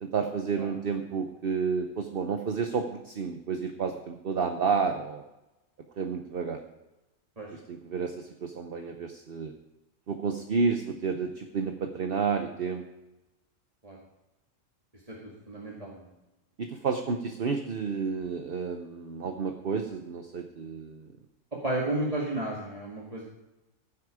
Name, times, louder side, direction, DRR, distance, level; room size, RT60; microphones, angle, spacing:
voice 1, 0.0-5.2 6.0-6.6 7.5-9.5 10.1-12.8 16.6-21.1, right 5 dB, 50° right, 5 dB, 1.0 m, -31 dB
voice 2, 15.1-16.1 21.6-23.2, right 1 dB, 30° right, -4 dB, 2.0 m, -33 dB
15.0 x 8.3 x 4.9 m, 1.0 s
omnidirectional pair, 1.3 m